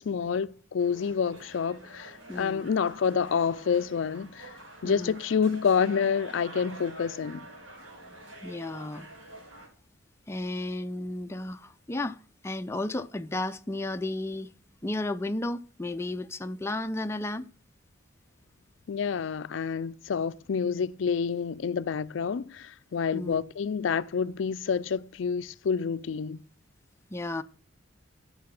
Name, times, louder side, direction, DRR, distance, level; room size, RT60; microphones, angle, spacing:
voice 1, 0.0-7.5 18.9-26.4, left 6 dB, 70° left, 0.4 m, -28 dB
sound 1, 0.8-9.7, right 1 dB, 85° right, 3.8 m, -47 dB
voice 2, 2.3-2.7 4.8-5.2 8.4-9.1 10.3-12.2 12.4-14.5 14.8-17.5 23.1-23.4 27.1-27.4, left 2 dB, 15° left, 0.4 m, -33 dB
12.0 x 5.6 x 5.9 m
head